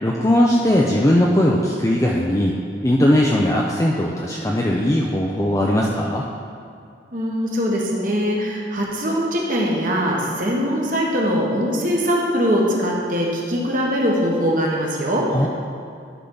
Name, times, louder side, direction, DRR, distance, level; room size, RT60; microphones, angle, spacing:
voice 1, 0.0-2.6 2.8-6.2 15.3-15.5, left 1 dB, 15° left, -3 dB, 0.5 m, -19 dB
voice 2, 7.1-15.5, equal, 45° right, -2 dB, 1.3 m, -22 dB
12.0 x 5.8 x 3.9 m, 2.4 s
head